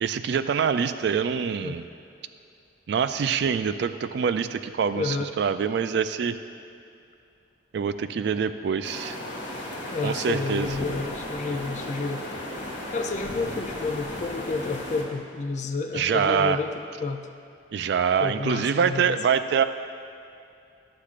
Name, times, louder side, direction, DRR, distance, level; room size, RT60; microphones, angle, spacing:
voice 1, 0.0-1.8 2.9-6.4 7.7-9.2 10.0-10.7 15.9-16.6 17.7-19.6, right 7 dB, 60° right, 11 dB, 0.3 m, -25 dB
voice 2, 4.9-5.3 9.9-12.3 12.9-17.3 18.2-19.2, left 4 dB, 40° left, 6 dB, 0.4 m, -30 dB
sound 1, 8.8-15.0, left 1 dB, 80° left, 1.6 m, -35 dB
11.5 x 8.3 x 2.5 m, 2.5 s
head